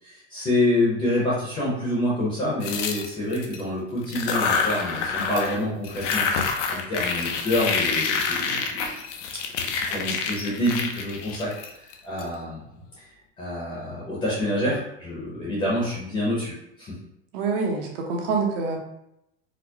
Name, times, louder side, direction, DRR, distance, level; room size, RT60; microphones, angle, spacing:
voice 1, 0.0-6.3 6.7-8.9 9.9-11.5 11.8-12.6 13.0-16.5 16.8-16.9, left 1 dB, 15° left, -6 dB, 0.7 m, -27 dB
sound 1, 2.6-3.6 4.0-5.6 5.8-12.2, left 5 dB, 85° left, 0.7 m, -27 dB
voice 2, 17.3-18.8, right 4 dB, 55° right, 1 dB, 0.9 m, -26 dB
4.4 x 2.1 x 2.8 m, 0.80 s
supercardioid pair, 165°, 35 cm